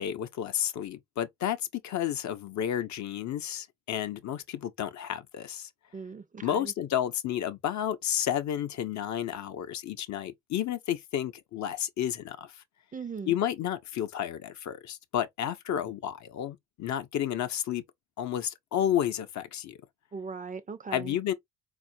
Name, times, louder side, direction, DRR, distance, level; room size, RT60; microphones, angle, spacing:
voice 1, 0.0-5.7 6.4-12.6 13.3-17.8 18.2-19.8 20.9-21.3, left 10 dB, 50° left, 0.7 m, -31 dB
voice 2, 5.9-6.7 12.9-13.4 20.1-21.2, right 5 dB, 20° right, 0.5 m, -39 dB
4.1 x 2.4 x 2.6 m
hypercardioid pair, 55°, 37 cm